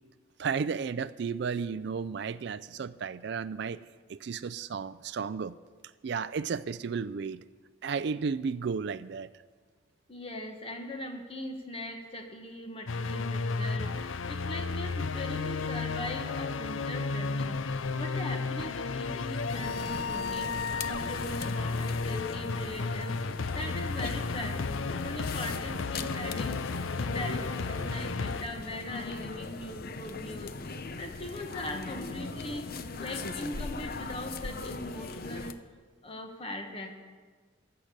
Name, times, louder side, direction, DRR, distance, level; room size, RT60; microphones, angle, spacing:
voice 1, 0.4-3.8 4.1-5.6 6.0-7.4 7.8-9.3, right 5 dB, 60° right, 16 dB, 0.4 m, -33 dB
voice 2, 10.1-26.6 27.0-35.6 36.0-36.9, left 1 dB, 30° left, 4 dB, 1.6 m, -40 dB
sound 1, 12.9-28.4, left 4 dB, 85° left, 0.6 m, -33 dB
sound 2, 19.5-35.5, left 3 dB, 50° left, 0.7 m, -39 dB
15.5 x 6.7 x 9.9 m, 1.5 s
head